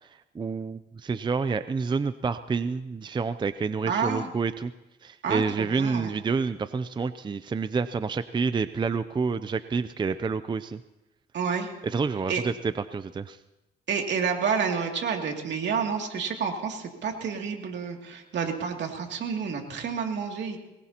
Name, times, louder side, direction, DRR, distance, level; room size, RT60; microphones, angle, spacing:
voice 1, 0.3-4.7 5.0-10.8 11.8-12.5 12.9-13.4, right 5 dB, 25° right, 12 dB, 0.5 m, -28 dB
voice 2, 3.9-4.3 5.2-6.1 11.3-11.7 12.3-12.4 13.9-20.6, right 6 dB, 65° right, 2 dB, 2.6 m, -29 dB
23.0 x 20.5 x 2.9 m, 0.98 s
cardioid pair, 90°, 20 cm